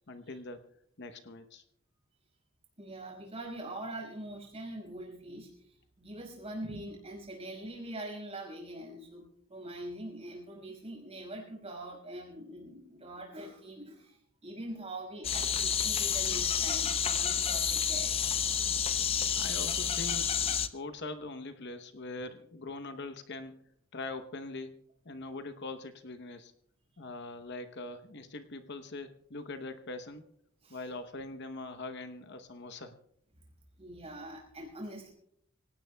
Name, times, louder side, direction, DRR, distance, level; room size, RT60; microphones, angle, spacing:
voice 1, 0.1-0.6 1.0-1.6 19.3-23.6 23.9-24.8 25.0-26.5 27.0-30.3 30.7-33.0, left 2 dB, 55° left, 8 dB, 0.9 m, -42 dB
voice 2, 2.8-18.4 30.6-30.8 33.8-35.1, right 1 dB, 30° right, 1 dB, 5.5 m, -43 dB
sound 1, 15.2-20.7, left 7 dB, 25° left, 0.6 m, -30 dB
26.0 x 17.5 x 2.3 m, 0.70 s
head